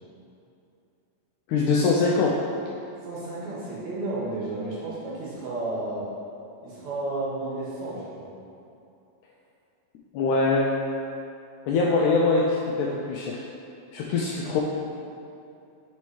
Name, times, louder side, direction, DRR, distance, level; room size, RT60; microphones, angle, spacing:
voice 1, 1.5-2.3 10.1-10.7 11.7-13.4 13.9-14.6, left 3 dB, 90° left, -2 dB, 1.7 m, -23 dB
voice 2, 3.0-6.1 6.6-8.3, right 2 dB, 60° right, -7 dB, 2.4 m, -32 dB
5.6 x 5.3 x 4.6 m, 2.7 s
omnidirectional pair, 4.1 m